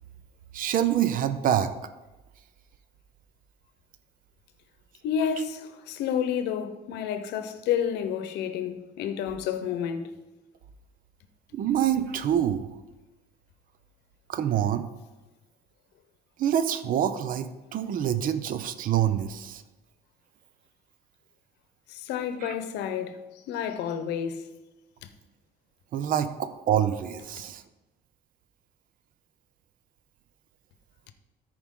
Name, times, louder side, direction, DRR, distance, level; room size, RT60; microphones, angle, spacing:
voice 1, 0.5-1.7 11.5-12.7 14.3-14.9 16.4-19.6 22.4-22.5 25.9-27.6, right 10 dB, 55° right, 0.6 m, -26 dB
voice 2, 5.0-10.2 21.9-23.2 23.5-24.4 25.0-25.1, left 8 dB, 85° left, 0.8 m, -30 dB
13.5 x 4.8 x 3.7 m
cardioid pair, 110°, 17 cm